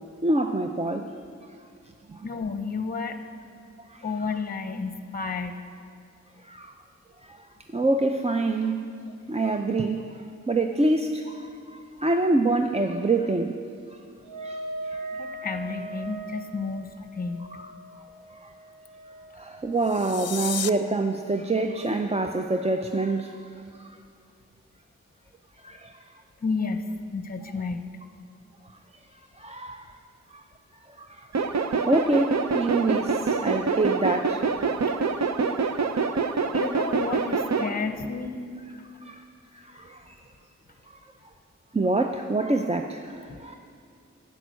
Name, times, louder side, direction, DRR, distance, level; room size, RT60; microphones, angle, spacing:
voice 1, 0.2-1.1 2.1-2.3 3.9-4.0 6.4-6.8 7.2-8.8 9.3-13.6 14.4-15.1 17.5-17.7 18.4-18.5 19.4-23.4 23.8-23.9 25.6-26.1 29.4-29.9 30.3-30.4 31.0-31.5 31.8-34.4 39.0-39.2 39.5-40.2 40.9-41.0 41.7-43.6, right 2 dB, 20° right, 5 dB, 0.5 m, -26 dB
voice 2, 2.2-3.2 4.0-5.6 15.1-17.4 26.4-27.9 36.5-38.4 43.3-43.4, left 4 dB, 30° left, 7 dB, 0.8 m, -31 dB
Wind instrument woodwind instrument, 14.2-19.9, right 2 dB, 90° right, 1.3 m, -39 dB
sound 1, 19.7-20.7, left 8 dB, 60° left, 0.4 m, -33 dB
sound 2, 31.3-37.7, right 4 dB, 65° right, 0.6 m, -26 dB
10.5 x 7.0 x 9.4 m, 2.4 s
wide cardioid pair, 80°, 29 cm